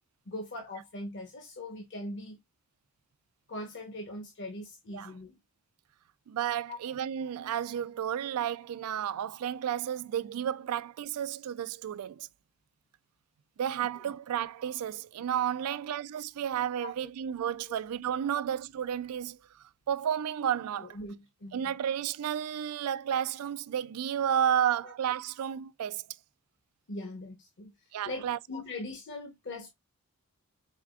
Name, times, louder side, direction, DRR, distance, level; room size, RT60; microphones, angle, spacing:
voice 1, 0.3-2.4 3.5-5.4 6.7-6.8 15.7-15.8 16.8-17.1 17.7-17.8 20.8-21.7 24.8-24.9 26.9-29.7, left 1 dB, 55° left, 0.9 m, -41 dB
voice 2, 6.3-12.3 13.6-19.4 19.9-21.0 21.5-26.0 27.9-28.4, right 9 dB, 80° right, 0.3 m, -32 dB
4.7 x 3.3 x 2.3 m
head